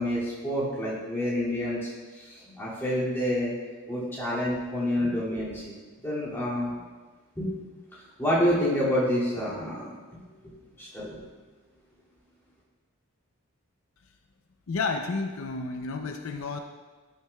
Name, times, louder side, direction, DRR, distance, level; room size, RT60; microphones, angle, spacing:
voice 1, 0.0-3.5 3.9-5.8 6.0-6.7 7.4-7.6 8.2-9.9 10.8-11.2, equal, 10° left, -9 dB, 2.2 m, -28 dB
voice 2, 14.7-16.6, left 4 dB, 70° left, 5 dB, 0.5 m, -31 dB
13.0 x 6.6 x 2.2 m, 1.4 s
head